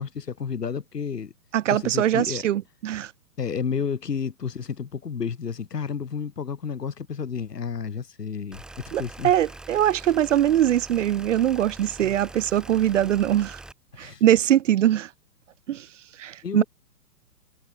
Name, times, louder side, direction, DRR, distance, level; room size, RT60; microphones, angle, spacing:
voice 1, 0.0-1.3 1.7-2.4 3.4-9.3 13.9-14.2 16.4-16.6, left 6 dB, 85° left, 7.2 m, -31 dB
voice 2, 1.5-3.1 8.9-13.6 14.0-15.1 15.7-15.9 16.2-16.6, right 11 dB, 55° right, 0.5 m, -22 dB
sound 1, 8.5-13.7, right 2 dB, ahead, 0.9 m, -43 dB
hypercardioid pair, 150°, 47 cm